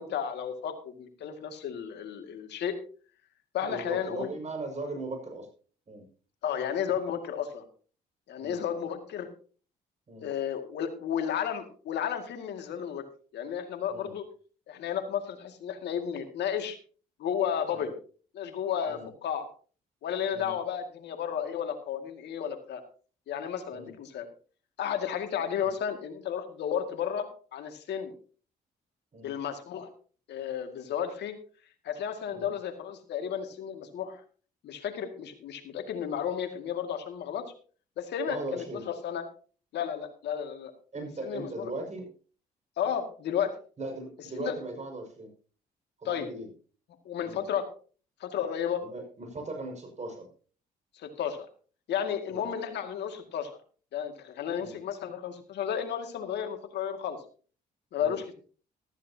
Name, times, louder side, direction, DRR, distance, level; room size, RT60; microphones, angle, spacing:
voice 1, 0.0-2.8 3.5-4.3 6.4-7.6 8.3-9.3 10.2-13.0 13.3-14.2 14.7-16.8 17.2-17.9 18.3-19.5 20.0-22.8 23.3-24.3 24.8-28.1 29.2-29.9 30.3-31.3 31.8-34.2 34.6-37.5 38.0-39.2 39.7-40.7 41.2-41.7 42.8-43.5 44.4-44.5 46.0-46.3 47.1-47.7 48.2-48.8 50.9-51.5 51.9-53.5 53.9-57.2 57.9-58.3, left 8 dB, 70° left, 6 dB, 2.2 m, -33 dB
voice 2, 3.6-5.5 5.9-6.0 8.4-8.6 10.1-10.3 13.9-14.1 17.7-17.9 18.9-19.1 20.3-20.5 23.7-23.9 25.6-25.7 29.1-29.3 32.3-32.5 38.3-38.8 40.9-42.1 43.8-45.3 46.0-46.5 47.2-47.4 48.8-50.3 52.3-52.5 54.6-54.8 58.0-58.2, right 2 dB, 40° right, 3 dB, 5.9 m, -38 dB
14.5 x 13.5 x 2.8 m, 0.40 s
supercardioid pair, 60°, 18 cm